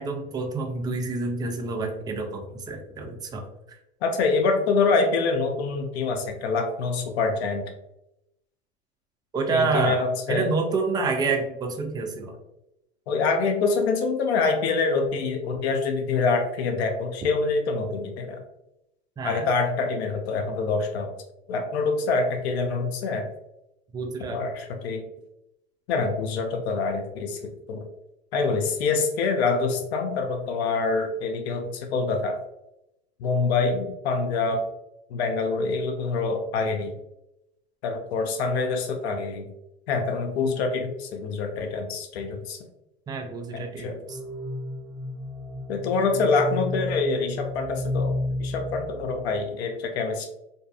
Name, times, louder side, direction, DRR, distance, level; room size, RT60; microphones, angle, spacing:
voice 1, 0.0-3.4 3.7-3.8 9.3-12.3 19.2-19.5 23.9-24.4 43.1-44.2, right 3 dB, 15° right, 3 dB, 0.3 m, -28 dB
voice 2, 4.0-7.6 9.5-10.5 13.1-18.4 19.2-21.1 21.5-23.3 24.3-25.0 25.9-27.4 27.7-27.8 28.3-32.4 33.2-34.6 35.1-36.9 37.8-39.5 39.9-42.6 43.5-44.0 45.7-50.3, left 4 dB, 75° left, 4 dB, 0.6 m, -25 dB
sound 1, 44.1-49.4, left 1 dB, 15° left, 0.8 m, -32 dB
2.6 x 2.4 x 2.3 m, 0.87 s
hypercardioid pair, 95°, 33 cm